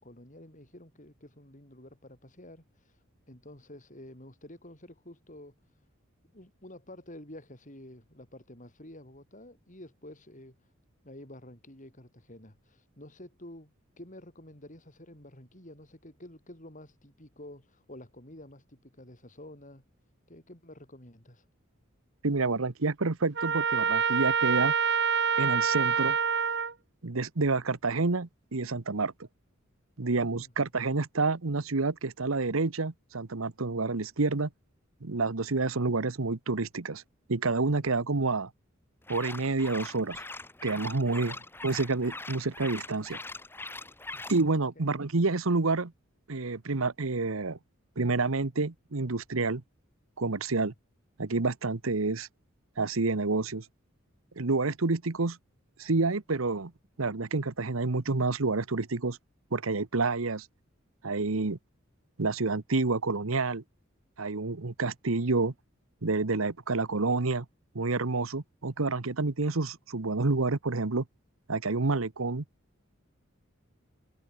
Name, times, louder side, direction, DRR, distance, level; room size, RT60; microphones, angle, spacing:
voice 1, 0.0-3.0 3.3-5.6 6.3-10.6 11.0-19.9 20.3-21.4 30.1-30.5 41.1-41.5 44.1-44.2 44.8-44.9 50.5-50.7, left 1 dB, 40° left, 7.2 m, -50 dB
voice 2, 22.2-24.7 25.4-26.2 27.0-29.1 30.0-34.5 35.0-37.0 37.3-38.5 39.1-40.2 40.6-41.4 41.6-43.2 44.3-45.9 46.3-47.6 48.0-49.6 50.2-50.7 51.2-52.3 52.8-53.6 54.4-55.4 55.8-56.7 57.0-59.2 59.5-60.5 61.0-61.6 62.2-63.6 64.2-65.5 66.0-67.4 67.7-71.0 71.5-72.4, right 3 dB, 85° right, 1.1 m, -28 dB
Trumpet, 23.4-26.7, right 6 dB, 60° right, 2.6 m, -26 dB
sound 1, 39.0-44.4, left 2 dB, 10° left, 1.6 m, -42 dB
head